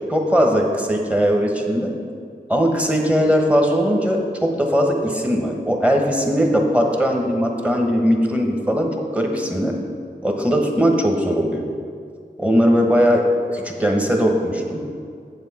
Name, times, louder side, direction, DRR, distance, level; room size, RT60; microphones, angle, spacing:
voice 1, 0.1-1.9 2.5-9.7 10.2-11.7 12.4-13.3 13.5-14.8, equal, 5° right, 2 dB, 1.2 m, -19 dB
7.5 x 7.2 x 4.2 m, 2.2 s
wide cardioid pair, 40°, 19 cm